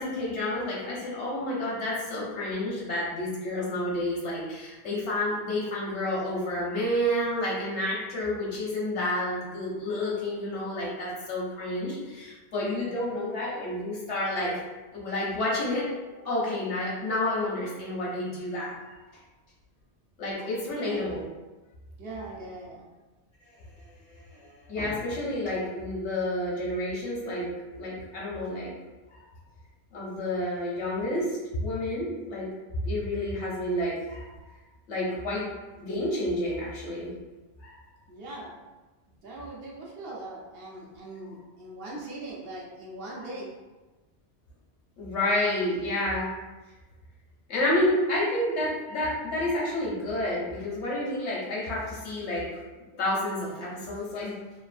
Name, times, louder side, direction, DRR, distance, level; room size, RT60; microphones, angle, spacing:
voice 1, 0.0-14.5 14.9-15.9 16.2-19.0 20.2-21.2 24.1-28.7 29.1-29.2 29.9-32.5 32.7-34.4 34.9-35.4 35.8-37.1 37.6-37.7 45.0-46.3 47.5-52.6 53.0-54.3, left 1 dB, 85° left, -5 dB, 1.2 m, -30 dB
voice 2, 20.6-21.1 22.0-22.9 38.1-38.5 39.2-43.5, right 2 dB, 65° right, -4 dB, 0.8 m, -40 dB
3.0 x 2.4 x 2.4 m, 1.2 s
omnidirectional pair, 1.1 m